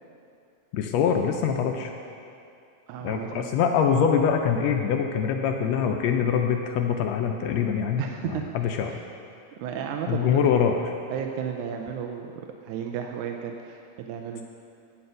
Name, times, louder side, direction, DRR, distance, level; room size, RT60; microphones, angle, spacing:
voice 1, 0.7-1.9 3.0-8.9 10.1-10.8, left 7 dB, 80° left, 4 dB, 1.5 m, -24 dB
voice 2, 2.9-3.5 8.0-8.5 8.9-9.1 9.6-10.4 11.1-12.3 12.6-14.4, right 8 dB, 80° right, 3 dB, 2.0 m, -33 dB
9.4 x 5.7 x 7.7 m, 2.5 s
omnidirectional pair, 3.5 m